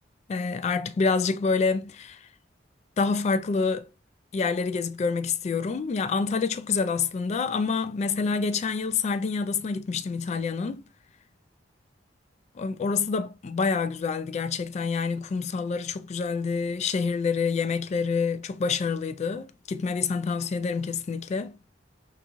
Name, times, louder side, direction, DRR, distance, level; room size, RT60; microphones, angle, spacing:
voice 1, 0.3-2.2 3.0-3.9 4.3-10.8 12.6-21.6, left 5 dB, 40° left, 0.3 m, -27 dB
3.6 x 2.4 x 3.0 m
head